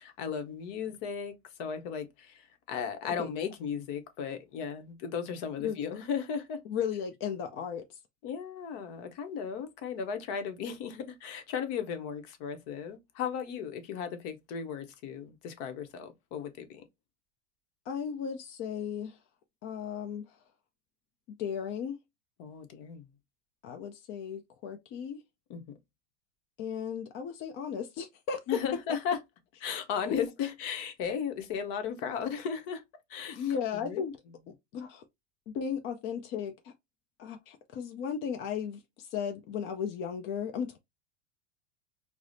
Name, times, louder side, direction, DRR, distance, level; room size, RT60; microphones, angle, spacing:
voice 1, 0.0-6.6 8.2-16.9 22.4-23.1 25.5-25.6 28.5-29.2 29.6-32.8 33.1-34.0, left 7 dB, 55° left, 0.8 m, -36 dB
voice 2, 6.7-8.0 17.9-19.2 19.6-20.2 21.4-22.0 23.6-25.2 26.6-28.4 33.3-34.2 34.7-35.0 35.5-36.7 37.2-40.8, left 7 dB, 35° left, 0.4 m, -35 dB
4.7 x 2.0 x 2.6 m
supercardioid pair, 130°, 36 cm